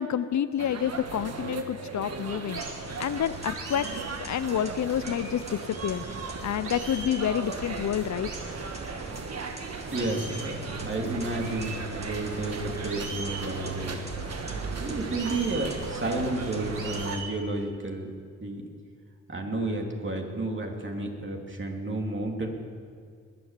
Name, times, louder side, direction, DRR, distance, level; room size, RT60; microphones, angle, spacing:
voice 1, 0.0-2.6 3.0-3.9 4.2-6.0 6.4-8.3, left 9 dB, 65° left, 15 dB, 0.6 m, -29 dB
sound 1, 0.6-17.2, right 4 dB, 55° right, 1.4 m, -36 dB
sound 2, 2.5-2.8 3.5-4.1 5.0-5.4 6.6-7.2 8.2-8.5 9.9-10.5 11.4-11.7 12.9-13.4 15.1-15.7 16.7-17.3, right 3 dB, 80° right, 3.0 m, -40 dB
sound 3, 2.6-17.2, right 1 dB, 20° right, 2.4 m, -45 dB
voice 2, 9.9-14.0 14.7-18.1 18.4-18.6 19.3-22.5, right 2 dB, 40° right, 1 dB, 2.8 m, -32 dB
21.5 x 7.8 x 7.4 m, 2.1 s
cardioid pair, 55°, 30 cm